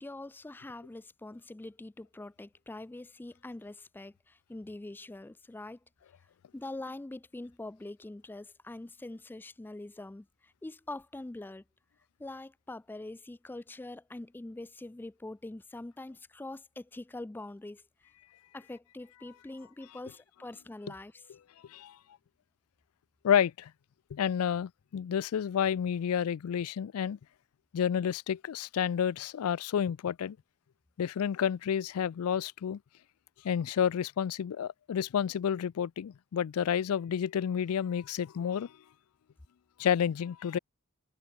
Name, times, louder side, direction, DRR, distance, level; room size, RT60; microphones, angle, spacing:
voice 1, 0.0-5.8 6.5-11.6 12.2-17.8 18.5-21.3, left 2 dB, 10° left, 0.3 m, -44 dB
voice 2, 23.2-23.7 24.1-27.2 27.7-30.4 31.0-32.8 33.4-38.7 39.8-40.6, left 8 dB, 85° left, 0.4 m, -30 dB
head